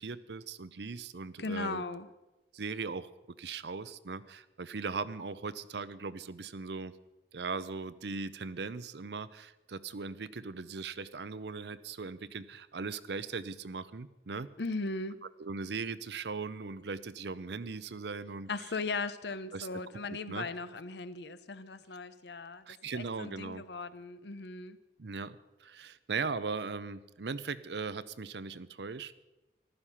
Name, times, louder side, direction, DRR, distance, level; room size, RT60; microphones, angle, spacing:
voice 1, 0.0-1.8 2.5-3.1 3.4-6.9 7.3-14.5 15.4-18.5 19.5-19.7 20.1-20.5 22.7-23.6 25.0-29.1, right 4 dB, 70° right, 15 dB, 0.6 m, -39 dB
voice 2, 1.4-2.1 14.6-15.2 18.5-24.8, left 3 dB, 70° left, 13 dB, 0.8 m, -38 dB
15.0 x 12.5 x 5.7 m, 1.0 s
head